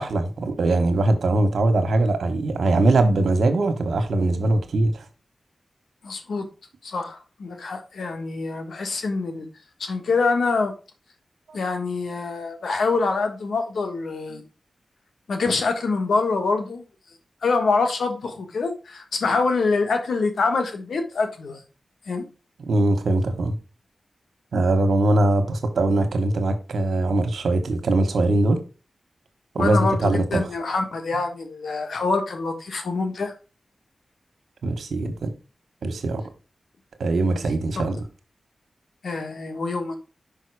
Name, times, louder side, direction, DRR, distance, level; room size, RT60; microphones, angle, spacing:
voice 1, 0.0-5.0 11.5-11.6 14.3-14.4 22.7-23.6 24.5-28.6 29.5-30.4 34.6-35.3 35.8-36.2 37.0-38.0, right 2 dB, 85° right, 1.2 m, -21 dB
voice 2, 6.0-6.5 6.8-9.5 9.8-10.7 11.5-14.4 15.3-16.8 17.4-21.6 22.1-22.3 29.6-33.3 37.3-37.4 39.0-40.0, left 4 dB, 85° left, 1.4 m, -25 dB
5.5 x 5.2 x 4.7 m
cardioid pair, 55°, 0 cm